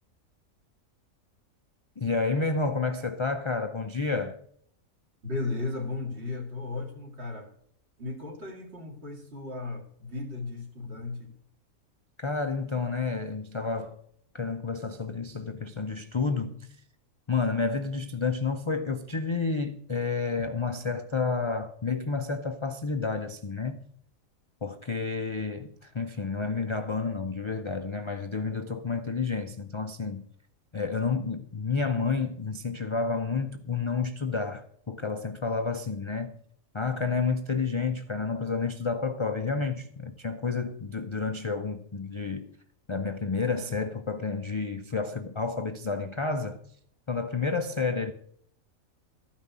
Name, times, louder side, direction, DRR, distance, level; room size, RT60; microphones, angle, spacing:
voice 1, 2.0-4.4 12.2-14.0 14.3-16.7 17.3-23.8 24.6-30.3 30.7-36.4 36.7-42.5 42.9-46.6 47.1-48.1, left 4 dB, 45° left, 0.3 m, -30 dB
voice 2, 5.2-7.5 8.0-11.3, left 3 dB, 50° right, 2.4 m, -35 dB
13.5 x 5.8 x 8.1 m
omnidirectional pair, 1.5 m